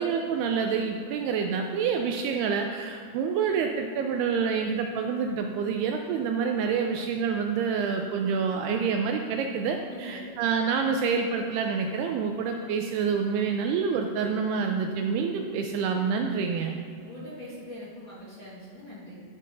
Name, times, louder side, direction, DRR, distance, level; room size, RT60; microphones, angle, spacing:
voice 1, 0.0-16.8, right 6 dB, 80° right, 4 dB, 2.4 m, -27 dB
voice 2, 9.8-10.5 12.5-12.6 17.0-19.2, equal, 45° left, -9 dB, 1.6 m, -43 dB
12.0 x 4.5 x 6.1 m, 2.3 s
omnidirectional pair, 5.0 m